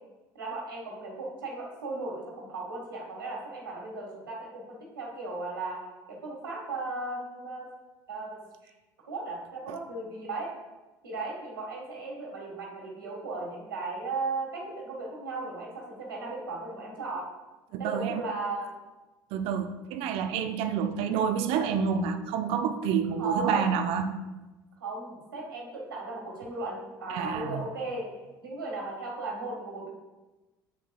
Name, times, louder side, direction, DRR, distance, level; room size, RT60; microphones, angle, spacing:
voice 1, 0.3-7.7 8.1-8.7 9.0-10.5 11.0-17.3 17.8-18.7 23.2-23.8 24.8-28.1 28.4-29.9, right 3 dB, 85° right, -2 dB, 1.5 m, -36 dB
voice 2, 17.7-18.2 19.3-24.1 27.1-27.7, right 7 dB, 60° right, 8 dB, 0.6 m, -28 dB
7.4 x 7.0 x 2.3 m, 1.1 s
hypercardioid pair, 65°, 11 cm